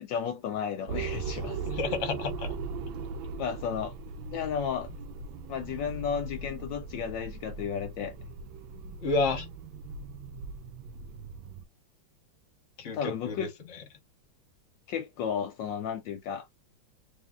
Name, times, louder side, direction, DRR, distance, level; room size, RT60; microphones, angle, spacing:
voice 1, 0.0-1.6 3.4-3.9 4.3-4.9 5.5-8.1 12.9-13.5 14.9-16.5, left 7 dB, 75° left, 1.2 m, -33 dB
sound 1, 0.9-11.6, right 4 dB, 80° right, 1.3 m, -39 dB
voice 2, 1.7-2.6 9.0-9.5 12.8-13.8, left 3 dB, 45° left, 1.1 m, -31 dB
3.6 x 2.6 x 3.5 m
omnidirectional pair, 2.2 m